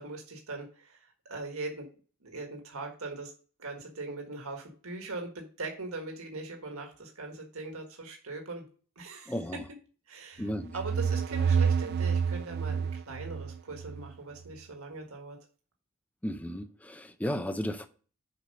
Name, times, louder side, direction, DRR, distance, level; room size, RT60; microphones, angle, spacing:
voice 1, 0.0-1.9 2.2-3.3 3.6-8.6 8.9-9.3 10.1-10.4 10.7-15.4, right 3 dB, 75° right, 1.6 m, -40 dB
voice 2, 9.3-9.6 10.4-10.8 16.2-17.9, equal, 5° left, 0.5 m, -34 dB
sound 1, 10.5-14.1, right 6 dB, 50° right, 0.4 m, -29 dB
7.1 x 4.8 x 5.2 m
head